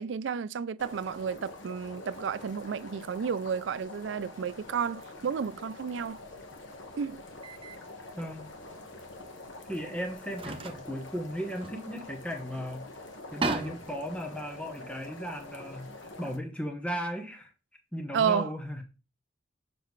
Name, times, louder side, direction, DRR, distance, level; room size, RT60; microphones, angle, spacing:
voice 1, 0.0-6.2 7.0-7.2 18.1-18.6, right 7 dB, 75° right, 0.4 m, -31 dB
sound 1, 0.8-16.4, left 2 dB, 85° left, 1.3 m, -46 dB
sound 2, 6.1-6.2 7.4-7.8 8.2-8.3 9.6-9.7 10.2-12.5 12.8-12.9 13.1-15.6, right 3 dB, 30° right, 0.7 m, -38 dB
voice 2, 9.7-12.9 13.3-17.5 17.9-18.8, equal, 5° left, 0.9 m, -36 dB
6.9 x 6.6 x 3.2 m
head